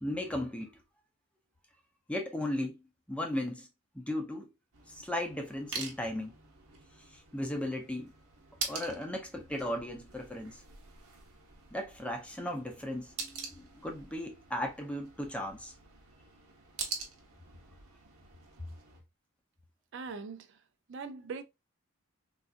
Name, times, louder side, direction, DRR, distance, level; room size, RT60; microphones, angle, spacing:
voice 1, 0.0-0.8 2.1-2.8 3.1-3.7 3.9-4.5 4.9-6.3 7.1-8.1 8.7-10.6 11.7-15.7, left 1 dB, 5° left, 0.5 m, -36 dB
sound 1, 4.7-19.0, right 5 dB, 85° right, 0.9 m, -45 dB
voice 2, 19.9-20.5 20.9-21.4, right 4 dB, 55° right, 0.4 m, -40 dB
3.9 x 2.4 x 2.4 m
head